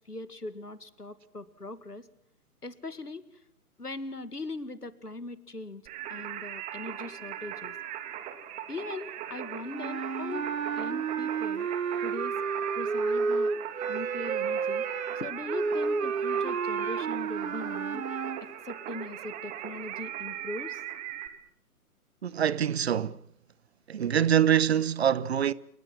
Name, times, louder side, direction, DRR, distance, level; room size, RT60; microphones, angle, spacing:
voice 1, 0.1-2.1 2.6-3.2 3.8-5.8 6.1-7.7 8.7-10.5 10.8-11.7 12.0-12.3 12.7-13.5 13.9-14.8 15.2-18.2 18.6-20.8, left 2 dB, 85° left, 2.1 m, -40 dB
Singing, 5.9-21.3, right 10 dB, 15° right, 2.1 m, -39 dB
sound 1, 9.7-18.4, right 5 dB, 65° right, 1.6 m, -31 dB
voice 2, 22.2-23.2 23.9-25.5, right 9 dB, 45° right, 1.0 m, -25 dB
28.5 x 24.5 x 6.0 m
figure-of-eight pair, 130°, 45 cm